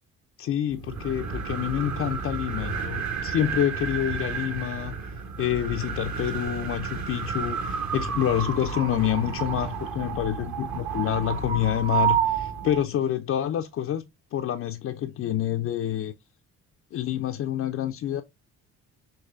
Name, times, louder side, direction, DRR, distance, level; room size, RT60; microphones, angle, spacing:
voice 1, 0.4-4.9 5.4-14.0 14.3-16.1 16.9-18.2, left 11 dB, 35° left, 0.4 m, -27 dB
sound 1, 0.7-12.8, right 7 dB, 40° right, 0.8 m, -30 dB
5.5 x 2.9 x 2.3 m
figure-of-eight pair, 45°, 43 cm